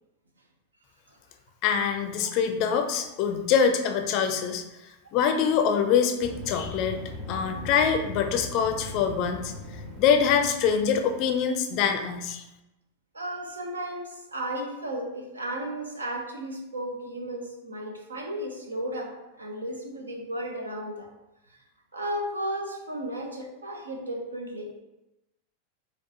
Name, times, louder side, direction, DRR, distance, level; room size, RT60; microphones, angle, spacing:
voice 1, 1.6-4.6 5.1-7.0 7.3-9.5 10.0-12.4, left 7 dB, 40° left, 6 dB, 0.4 m, -24 dB
sound 1, 6.2-11.3, left 1 dB, 25° right, 0.9 m, -40 dB
voice 2, 13.1-21.1 21.9-24.7, right 1 dB, 75° right, 2 dB, 0.6 m, -34 dB
4.5 x 2.3 x 2.8 m, 0.96 s
figure-of-eight pair, 90°, 0 cm